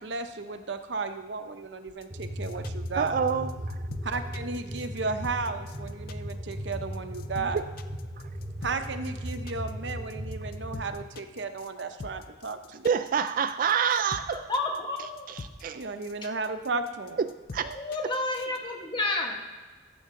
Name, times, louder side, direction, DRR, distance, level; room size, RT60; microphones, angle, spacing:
voice 1, 0.0-3.2 4.0-7.6 8.6-12.9 15.7-17.2, right 4 dB, 70° right, 8 dB, 0.8 m, -34 dB
sound 1, 1.9-18.6, left 4 dB, 50° left, 0.5 m, -44 dB
sound 2, 2.1-11.0, equal, 25° right, 0.9 m, -37 dB
voice 2, 2.9-3.8 7.4-7.7 12.8-14.4 15.6-15.8 17.2-17.8, right 7 dB, 45° right, 11 dB, 0.3 m, -27 dB
voice 3, 14.3-15.3 17.7-19.3, left 2 dB, 25° left, 1 dB, 1.4 m, -30 dB
14.5 x 7.0 x 3.7 m, 1.3 s
head